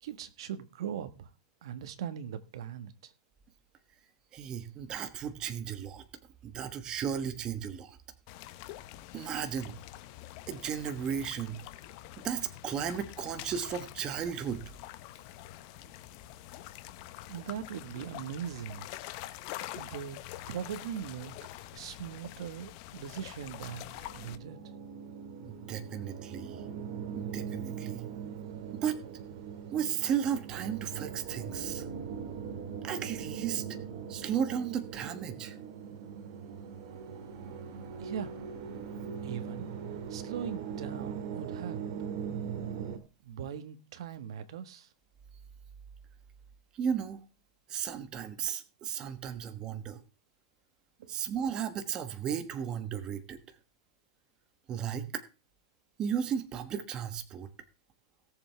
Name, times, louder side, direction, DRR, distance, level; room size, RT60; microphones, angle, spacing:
voice 1, 0.0-1.3 1.6-3.1 17.3-18.9 19.7-20.2 20.5-21.3 21.7-24.6 38.0-38.3 39.2-39.7 40.1-41.8 43.2-44.9 51.0-51.1, right 9 dB, 70° right, 1.5 m, -40 dB
voice 2, 4.3-6.0 6.4-8.0 9.1-9.8 10.5-11.6 12.2-14.6 25.4-26.6 27.1-28.0 28.7-29.0 29.7-31.9 32.8-33.6 34.1-35.6 46.7-47.2 47.7-50.0 51.1-53.4 54.7-55.2 56.0-57.5, right 8 dB, 25° right, 1.2 m, -34 dB
sound 1, 8.3-24.4, left 14 dB, 45° left, 0.9 m, -46 dB
sound 2, 23.6-43.0, right 7 dB, 55° right, 2.2 m, -40 dB
17.5 x 7.3 x 3.4 m
supercardioid pair, 145°, 3 cm